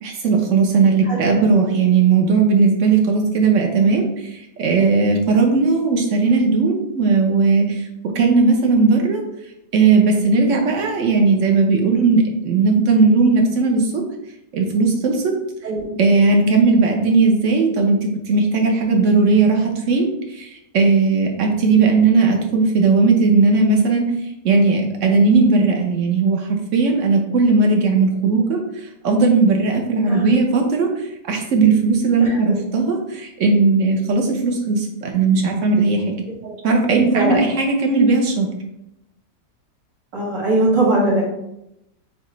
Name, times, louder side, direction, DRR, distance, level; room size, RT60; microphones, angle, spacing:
voice 1, 0.0-7.9 8.1-9.2 9.7-14.0 14.5-15.3 16.0-24.0 24.4-28.6 29.0-36.1 36.6-38.5, right 4 dB, 60° right, 2 dB, 0.8 m, -17 dB
voice 2, 30.0-30.4 32.2-32.5 36.4-36.5 36.9-37.4 40.1-41.2, right 2 dB, 80° right, -4 dB, 2.2 m, -21 dB
6.5 x 2.4 x 3.1 m, 0.84 s
omnidirectional pair, 1.8 m